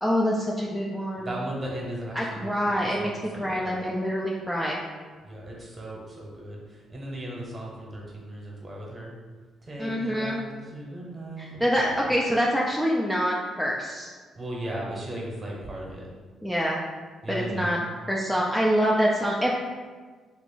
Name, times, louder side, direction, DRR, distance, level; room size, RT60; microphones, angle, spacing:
voice 1, 0.0-1.3 2.1-3.1 3.4-4.8 9.8-10.4 11.4-14.1 16.4-16.8 17.3-17.8 18.1-19.5, equal, ahead, -4 dB, 0.4 m, -25 dB
voice 2, 1.2-3.7 5.2-9.1 9.6-11.8 14.3-16.1 17.2-17.8, right 1 dB, 30° right, -3 dB, 0.9 m, -37 dB
2.9 x 2.5 x 3.7 m, 1.5 s
cardioid pair, 90°, 0 cm